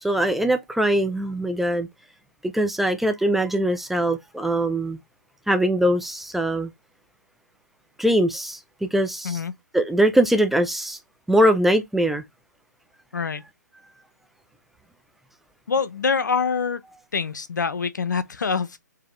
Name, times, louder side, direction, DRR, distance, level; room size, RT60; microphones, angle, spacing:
voice 1, 0.0-1.9 2.4-5.0 5.5-6.7 8.0-9.4 9.7-11.0 11.3-12.2, right 1 dB, ahead, 0.4 m, -22 dB
voice 2, 15.7-16.8 17.1-18.8, left 5 dB, 80° left, 0.7 m, -25 dB
4.9 x 2.8 x 3.1 m
hypercardioid pair, 145°, 10 cm